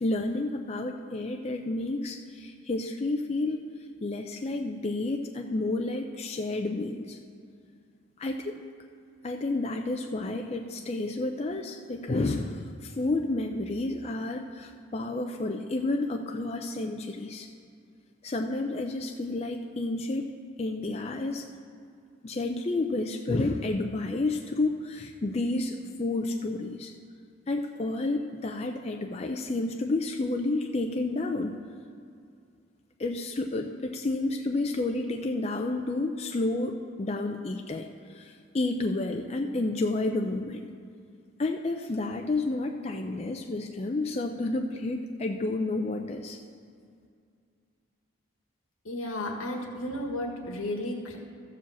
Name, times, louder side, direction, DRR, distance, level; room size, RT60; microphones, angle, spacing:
voice 1, 0.0-3.6 4.0-7.2 8.2-8.6 9.2-17.5 18.2-20.3 20.6-21.4 22.2-26.9 27.5-31.6 33.0-40.6 41.4-46.4, left 2 dB, 30° left, 3 dB, 0.4 m, -30 dB
voice 2, 48.8-51.2, left 1 dB, 85° left, 2 dB, 1.5 m, -33 dB
13.5 x 5.0 x 7.1 m, 2.3 s
head